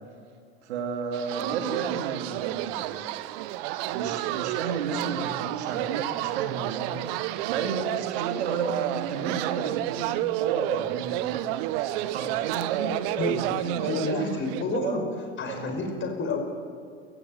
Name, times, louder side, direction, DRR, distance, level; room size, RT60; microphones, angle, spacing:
voice 1, 0.6-3.1 3.9-7.1 7.5-11.4 12.1-13.0 13.2-13.9 14.7-15.0 15.5-15.8, right 5 dB, 85° right, 4 dB, 2.9 m, -32 dB
sound 1, 1.1-14.8, right 15 dB, 65° right, 1.0 m, -30 dB
voice 2, 1.5-2.0 5.0-5.3 13.2-15.1 15.4-16.4, left 3 dB, 35° left, 4 dB, 5.6 m, -31 dB
25.5 x 15.0 x 8.0 m, 2.2 s
hypercardioid pair, 90°, 32 cm